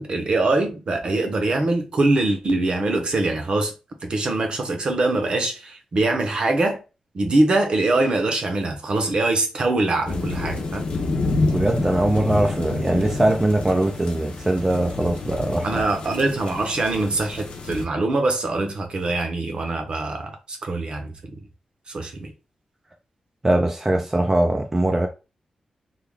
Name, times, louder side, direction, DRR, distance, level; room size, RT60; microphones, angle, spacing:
voice 1, 0.0-3.7 4.0-6.8 7.1-10.9 15.6-21.4 21.9-22.3, right 2 dB, 45° right, 0.8 m, -23 dB
sound 1, 10.1-17.8, left 3 dB, 60° left, 0.7 m, -28 dB
voice 2, 11.5-15.8 23.4-25.1, right 1 dB, 15° right, 0.4 m, -21 dB
3.3 x 2.3 x 3.6 m
wide cardioid pair, 165°, 2 cm